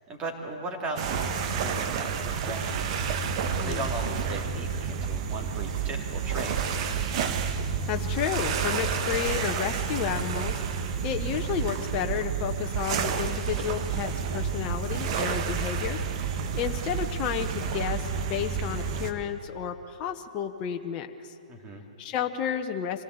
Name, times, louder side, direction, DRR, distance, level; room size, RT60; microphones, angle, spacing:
voice 1, 0.1-3.1 3.6-6.7 21.5-21.8, right 2 dB, 25° right, 1 dB, 3.4 m, -37 dB
sound 1, 1.0-19.1, right 6 dB, 50° right, 1.5 m, -30 dB
voice 2, 7.9-10.6 11.0-16.0 16.5-21.3 22.0-23.0, left 9 dB, 35° left, 5 dB, 1.1 m, -31 dB
25.5 x 17.0 x 8.1 m, 2.8 s
hypercardioid pair, 120°, 4 cm